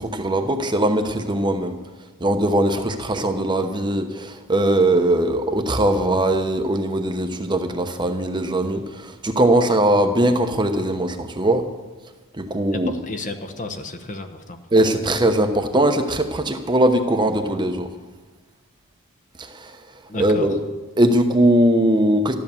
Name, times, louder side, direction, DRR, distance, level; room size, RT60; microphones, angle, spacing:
voice 1, 0.0-1.8 2.2-11.7 12.4-12.9 14.7-17.9 19.4-19.8 20.2-20.6 21.0-22.4, right 1 dB, 20° right, 6 dB, 0.9 m, -20 dB
voice 2, 12.7-14.6 20.1-20.5, left 2 dB, 35° left, 6 dB, 1.1 m, -32 dB
13.5 x 12.0 x 7.1 m, 1.3 s
head